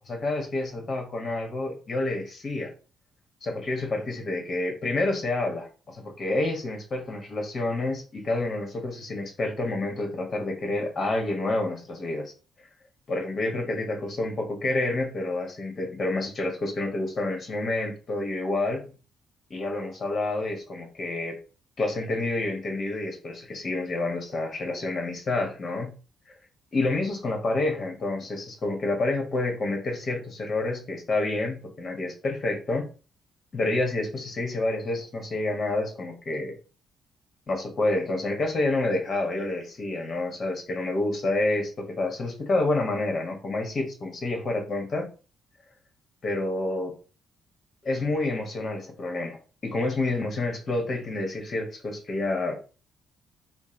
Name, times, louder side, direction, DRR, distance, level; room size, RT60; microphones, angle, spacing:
voice 1, 0.0-2.7 3.4-12.3 13.1-18.9 19.5-21.4 21.8-25.9 26.7-32.9 33.5-36.5 37.5-45.1 46.2-47.0 47.8-52.6, left 2 dB, 45° left, 3 dB, 1.4 m, -28 dB
3.9 x 2.2 x 3.8 m, 0.35 s
cardioid pair, 90°, 0 cm